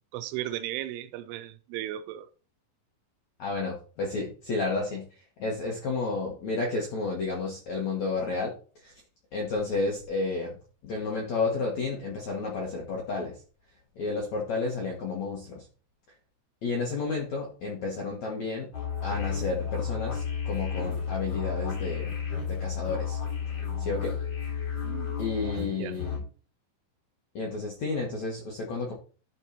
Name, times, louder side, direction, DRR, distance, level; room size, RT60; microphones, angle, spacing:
voice 1, 0.1-2.3 24.8-25.2 25.7-26.0, right 13 dB, 85° right, 3.2 m, -36 dB
voice 2, 3.4-5.1 5.4-8.5 8.8-8.9 9.3-10.6 10.8-13.3 14.0-15.6 16.6-18.7 19.0-22.2 22.4-23.2 23.8-24.1 25.2-26.2 27.3-28.9, left 3 dB, 65° left, 1.8 m, -31 dB
sound 1, 18.7-26.2, left 7 dB, 25° left, 3.5 m, -32 dB
12.0 x 4.5 x 4.1 m
omnidirectional pair, 5.5 m